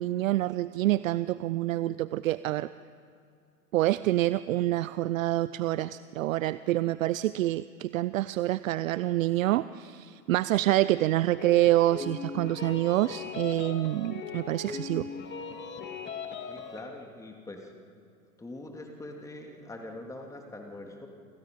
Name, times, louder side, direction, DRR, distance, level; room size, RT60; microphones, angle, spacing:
voice 1, 0.0-2.7 3.7-15.1, right 15 dB, 55° right, 16 dB, 0.7 m, -27 dB
sound 1, 11.4-16.8, left 5 dB, 20° left, 2.6 m, -39 dB
voice 2, 16.5-17.7 18.4-21.1, left 2 dB, 5° left, 2 dB, 2.6 m, -43 dB
28.5 x 26.5 x 5.2 m, 2.3 s
figure-of-eight pair, 100°, 48 cm